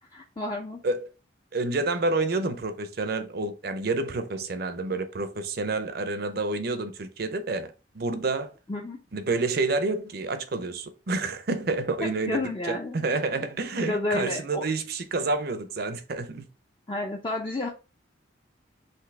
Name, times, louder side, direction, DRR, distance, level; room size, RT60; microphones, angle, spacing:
voice 1, 0.1-0.8 8.7-9.0 12.0-13.1 13.7-14.6 16.9-17.7, left 2 dB, 25° left, 0.5 m, -31 dB
voice 2, 1.5-8.5 9.1-16.5, right 3 dB, 55° right, 0.6 m, -29 dB
5.9 x 2.7 x 3.3 m
head